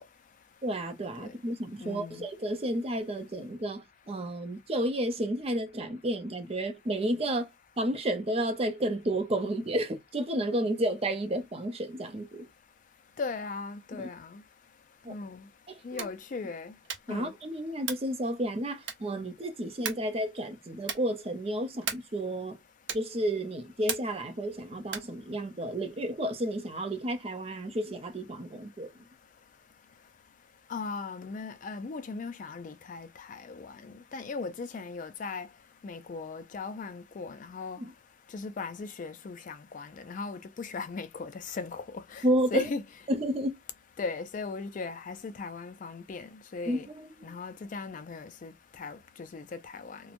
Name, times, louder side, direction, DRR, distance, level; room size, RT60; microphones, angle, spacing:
voice 1, 0.6-7.5 7.8-12.5 13.9-14.1 15.0-15.2 15.7-16.1 17.1-22.6 22.9-28.9 37.8-37.9 42.2-42.7 43.1-43.6 46.7-47.4, right 1 dB, 30° right, 0.6 m, -31 dB
voice 2, 1.8-2.2 13.2-14.4 15.1-15.4 15.8-16.7 17.1-17.3 30.7-33.7 34.1-35.5 35.8-37.8 38.3-42.2 42.5-42.8 44.0-46.9 47.2-50.0, left 4 dB, 45° left, 0.4 m, -38 dB
sound 1, 15.9-16.3 16.8-17.2 17.8-18.2 18.8-19.2 19.8-20.2 20.8-21.2 21.8-22.2 22.8-23.2 23.9-24.3 24.8-25.2, right 7 dB, 90° right, 0.7 m, -37 dB
3.0 x 2.1 x 2.4 m
head